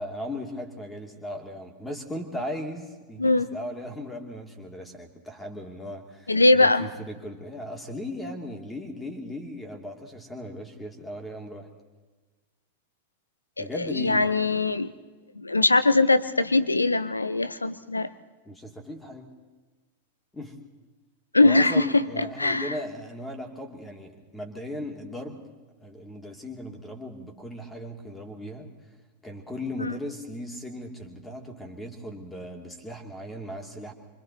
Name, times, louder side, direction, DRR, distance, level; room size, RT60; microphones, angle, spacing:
voice 1, 0.0-11.7 13.6-14.4 18.4-19.3 20.3-20.6 21.4-25.4 25.8-28.7 29.2-33.9, left 1 dB, 10° left, 2.6 m, -37 dB
voice 2, 6.3-6.9 13.6-13.7 14.0-14.9 15.4-18.1 21.3-21.8 22.4-22.7 29.8-29.9, left 2 dB, 80° left, 0.8 m, -21 dB
27.0 x 25.0 x 4.1 m
figure-of-eight pair, 90°, 0 cm